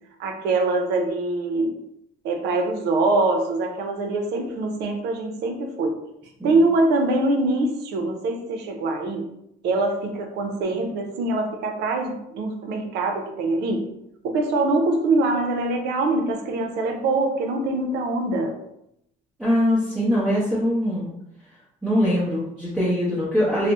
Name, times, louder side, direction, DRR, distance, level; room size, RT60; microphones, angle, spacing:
voice 1, 0.2-1.8 2.2-6.0 6.4-9.3 9.6-13.9 14.2-18.5, right 2 dB, 80° right, 4 dB, 0.5 m, -23 dB
voice 2, 19.4-21.1 21.8-23.7, equal, 5° right, -9 dB, 0.7 m, -22 dB
2.6 x 2.0 x 3.4 m, 0.80 s
cardioid pair, 110°, 17 cm